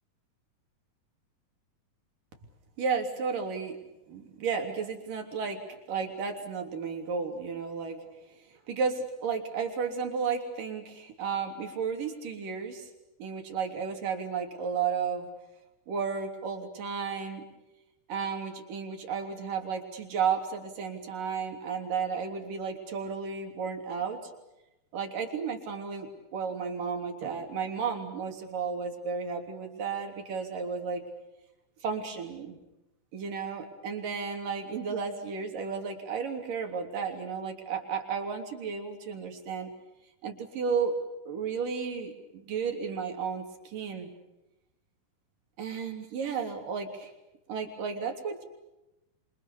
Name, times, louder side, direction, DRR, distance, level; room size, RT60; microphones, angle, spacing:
voice 1, 2.8-3.8 4.1-5.6 5.9-8.0 8.4-12.9 13.2-15.3 15.9-17.4 18.1-24.2 24.9-31.0 31.8-32.6 33.1-39.7 40.2-41.0 41.3-44.1 45.6-47.1 47.5-48.4, right 6 dB, 65° right, 4 dB, 4.8 m, -33 dB
27.5 x 26.0 x 6.9 m, 0.94 s
omnidirectional pair, 4.2 m